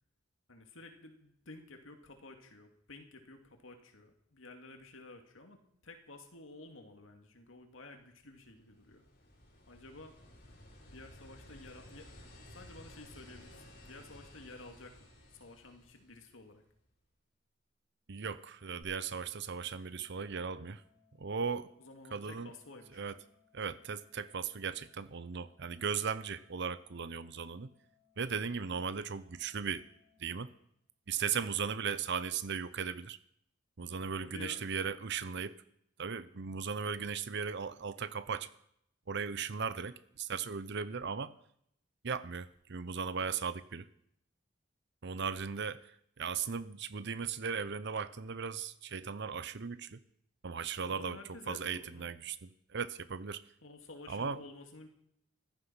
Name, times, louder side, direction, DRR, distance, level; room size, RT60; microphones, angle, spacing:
voice 1, 0.5-9.0 9.7-10.1 10.9-12.2 12.5-16.6 21.8-23.0 34.2-34.6 50.8-52.1 53.6-54.9, left 2 dB, 80° left, 5 dB, 2.4 m, -52 dB
sound 1, 8.2-16.7 18.8-18.9, left 1 dB, 50° left, 5.5 m, -55 dB
voice 2, 18.1-20.8 21.2-21.7 22.1-22.5 22.9-23.2 23.5-27.7 28.2-29.8 30.2-30.5 31.1-33.2 33.8-35.6 36.0-38.5 39.1-41.3 42.0-43.9 45.0-50.0 50.4-51.2 51.5-53.4 54.1-54.4, right 6 dB, 60° right, 16 dB, 0.8 m, -37 dB
Organ, 19.9-30.9, left 7 dB, 40° right, 2.9 m, -72 dB
15.5 x 13.5 x 5.7 m, 0.71 s
head